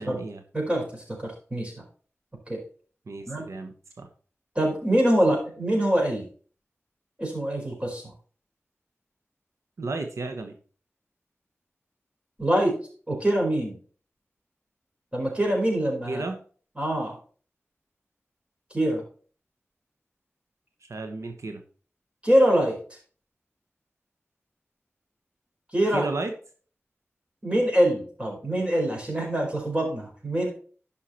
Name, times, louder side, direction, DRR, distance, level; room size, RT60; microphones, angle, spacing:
voice 1, 0.0-0.4 3.1-4.1 5.3-5.4 9.8-10.6 16.1-16.4 20.8-21.6 25.9-26.3, right 3 dB, 90° right, 5 dB, 1.1 m, -33 dB
voice 2, 0.5-1.7 2.5-2.6 3.3-3.4 4.5-6.3 7.2-8.0 12.4-12.8 13.1-13.8 15.1-16.2 16.8-17.2 18.7-19.0 22.2-22.8 25.7-26.1 27.4-30.5, right 1 dB, 25° right, 0 dB, 4.5 m, -24 dB
11.5 x 5.8 x 4.3 m, 0.41 s
wide cardioid pair, 80°, 5 cm